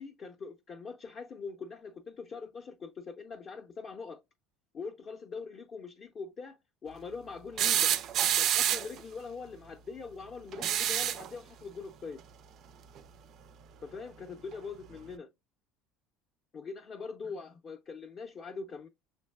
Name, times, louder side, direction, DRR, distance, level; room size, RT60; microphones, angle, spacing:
voice 1, 0.0-4.2 4.7-8.0 8.4-12.2 13.8-15.3 16.5-18.9, left 4 dB, 30° left, 0.5 m, -43 dB
sound 1, 7.6-9.0 10.5-11.3 13.0-13.1 14.5-14.6, right 10 dB, 45° right, 0.3 m, -27 dB
6.2 x 3.2 x 2.2 m
cardioid pair, 150°, 0 cm